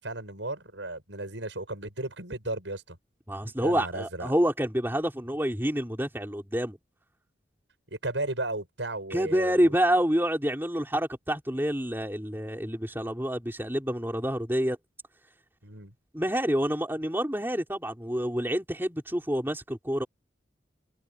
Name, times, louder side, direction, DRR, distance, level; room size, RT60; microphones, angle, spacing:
voice 1, 0.0-3.0 3.6-4.3 7.9-9.8 15.6-15.9, right 2 dB, 85° right, 7.7 m, -35 dB
voice 2, 3.3-6.8 9.1-14.8 16.1-20.1, equal, 10° right, 4.3 m, -28 dB
head